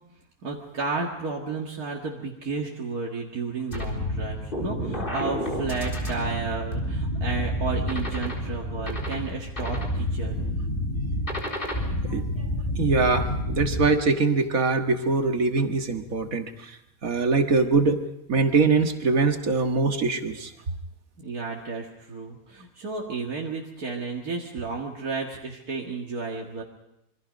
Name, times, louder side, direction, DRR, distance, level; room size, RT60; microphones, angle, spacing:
voice 1, 0.4-10.6 21.2-26.6, right 4 dB, 85° right, -2 dB, 2.5 m, -32 dB
sound 1, 3.7-13.9, equal, 35° left, 4.0 m, -29 dB
voice 2, 12.8-16.7 17.0-18.0 18.3-20.5, right 4 dB, 70° right, 5 dB, 2.0 m, -23 dB
26.5 x 23.5 x 5.3 m, 0.87 s
omnidirectional pair, 1.5 m